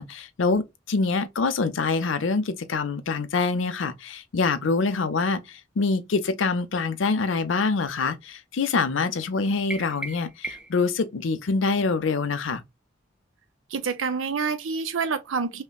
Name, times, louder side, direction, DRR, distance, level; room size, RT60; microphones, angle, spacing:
voice 1, 0.0-12.6, left 4 dB, 80° left, 0.6 m, -25 dB
sound 1, 9.7-10.9, right 2 dB, 5° right, 0.4 m, -36 dB
voice 2, 13.7-15.6, right 5 dB, 85° right, 0.6 m, -27 dB
5.4 x 2.1 x 2.3 m
head